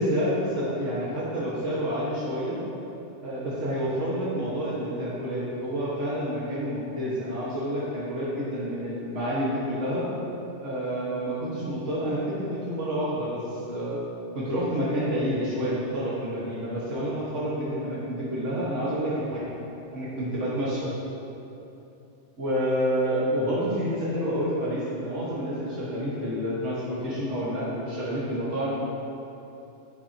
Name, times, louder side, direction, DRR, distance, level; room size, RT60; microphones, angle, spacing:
voice 1, 0.0-2.6 3.2-10.1 10.6-14.0 14.3-19.4 19.9-20.9 22.4-28.7, equal, 80° right, -8 dB, 1.9 m, -28 dB
11.0 x 8.9 x 2.8 m, 2.9 s
omnidirectional pair, 1.2 m